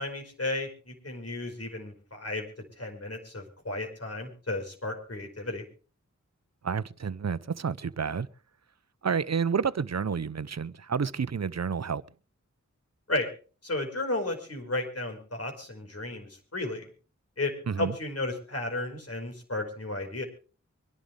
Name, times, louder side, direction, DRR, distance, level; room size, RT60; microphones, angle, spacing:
voice 1, 0.0-2.5 2.8-5.6 13.1-13.3 13.6-16.9 17.4-20.2, left 2 dB, 55° left, 5.1 m, -33 dB
voice 2, 6.6-8.3 9.0-12.0 17.7-17.9, right 6 dB, 60° right, 0.8 m, -30 dB
24.5 x 11.5 x 3.4 m
cardioid pair, 45°, 29 cm